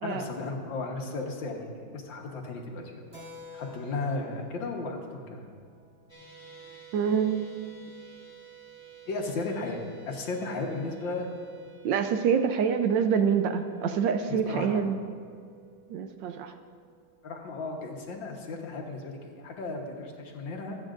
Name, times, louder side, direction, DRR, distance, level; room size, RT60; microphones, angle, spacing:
voice 1, 0.0-3.0 3.5-5.4 9.1-9.8 10.1-11.3 14.3-14.8 17.2-20.8, left 3 dB, 70° left, 1 dB, 1.9 m, -35 dB
Keyboard (musical), 3.1-7.2, left 3 dB, 25° right, 1.0 m, -50 dB
sound 1, 6.1-18.4, right 8 dB, 15° left, 2.7 m, -52 dB
voice 2, 6.9-7.5 11.8-15.0 15.9-16.5, right 7 dB, 75° right, 8 dB, 1.2 m, -26 dB
24.5 x 8.7 x 2.5 m, 2.2 s
omnidirectional pair, 2.2 m